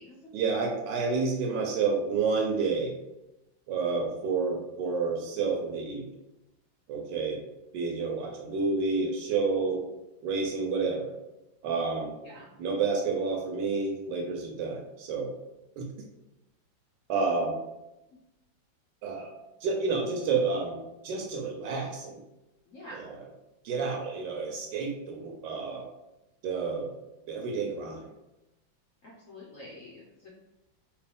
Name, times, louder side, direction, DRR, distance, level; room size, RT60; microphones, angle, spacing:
voice 1, 0.3-3.0 3.7-6.0 6.9-7.4 7.7-9.8 10.2-11.1 11.6-12.1 12.6-15.3 15.8-15.9 17.1-17.6 19.0-19.3 19.6-20.8 21.0-22.2 23.0-23.1 23.6-25.9 26.4-26.9 27.3-28.0, right 4 dB, 75° right, 2 dB, 1.1 m, -29 dB
voice 2, 22.7-23.0 29.0-30.3, left 1 dB, 65° left, -4 dB, 0.7 m, -47 dB
3.0 x 3.0 x 3.4 m, 0.95 s
omnidirectional pair, 2.1 m